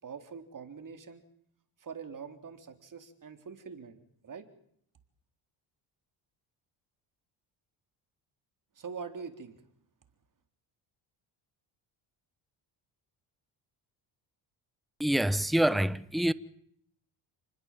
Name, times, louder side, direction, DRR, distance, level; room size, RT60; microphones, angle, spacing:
voice 1, 0.0-1.2 1.8-4.5 8.8-9.6, right 6 dB, 40° right, 3.8 m, -44 dB
voice 2, 15.0-16.3, right 1 dB, ahead, 1.1 m, -26 dB
29.5 x 20.5 x 7.5 m
cardioid pair, 85°, 47 cm